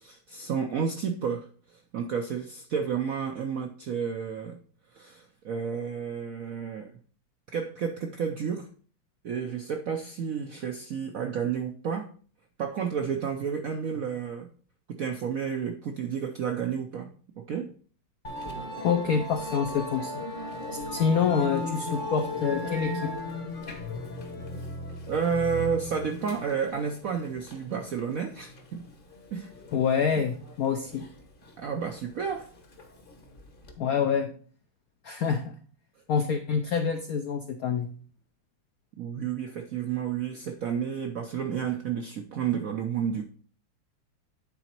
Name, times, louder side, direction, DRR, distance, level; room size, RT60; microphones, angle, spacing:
voice 1, 0.0-4.6 4.9-6.9 7.5-8.7 9.2-12.1 12.6-14.5 14.9-17.7 25.1-28.8 29.3-29.5 31.6-32.5 39.0-43.2, right 7 dB, 80° right, 5 dB, 0.7 m, -31 dB
Musical instrument, 18.2-33.7, left 2 dB, 35° left, 0.8 m, -37 dB
voice 2, 18.8-20.2 20.9-23.1 29.7-31.1 33.8-34.3 35.0-35.5 36.1-37.9, left 6 dB, 80° left, 6 dB, 0.8 m, -26 dB
9.6 x 4.0 x 4.5 m, 0.43 s
omnidirectional pair, 2.3 m